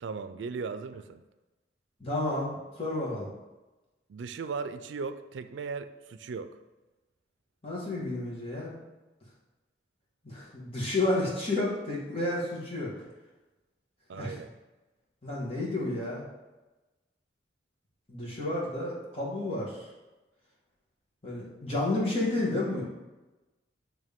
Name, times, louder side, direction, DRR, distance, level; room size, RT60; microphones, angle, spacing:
voice 1, 0.0-1.2 4.1-6.6 14.1-14.5, right 5 dB, 90° right, 10 dB, 0.4 m, -37 dB
voice 2, 2.0-3.3 7.6-8.7 10.2-12.9 14.1-14.3 15.2-16.2 18.1-19.9 21.2-22.8, left 2 dB, 30° left, -5 dB, 1.7 m, -31 dB
8.8 x 3.3 x 3.6 m, 1.1 s
head